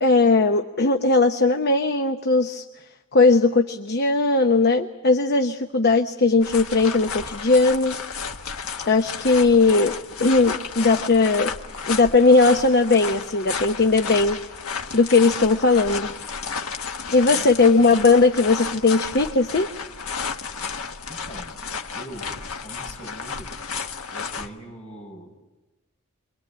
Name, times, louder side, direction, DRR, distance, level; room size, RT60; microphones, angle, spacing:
voice 1, 0.0-2.6 3.1-8.0 8.9-9.9 10.2-11.5 11.9-14.4 14.9-16.1 17.1-19.7, left 3 dB, 50° left, 6 dB, 0.9 m, -18 dB
sound 1, 6.4-24.5, left 5 dB, 80° left, 1.5 m, -32 dB
voice 2, 17.3-17.9 21.1-21.6 21.9-25.3, right 1 dB, 35° left, -1 dB, 7.8 m, -42 dB
27.5 x 23.0 x 8.8 m, 1.1 s
head